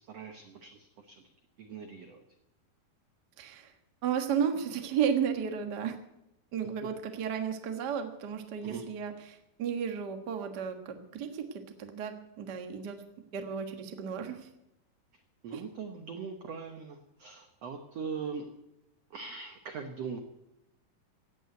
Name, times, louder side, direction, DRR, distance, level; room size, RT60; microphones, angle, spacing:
voice 1, 0.1-1.2 1.6-2.2 8.6-8.8 15.4-18.6 19.1-20.2, right 5 dB, 75° right, 6 dB, 1.4 m, -41 dB
voice 2, 3.4-3.7 4.0-6.0 6.5-9.1 9.6-13.0 13.3-14.4 15.5-15.6, right 7 dB, 60° right, 5 dB, 1.0 m, -33 dB
16.5 x 9.5 x 8.1 m, 0.87 s
omnidirectional pair, 4.5 m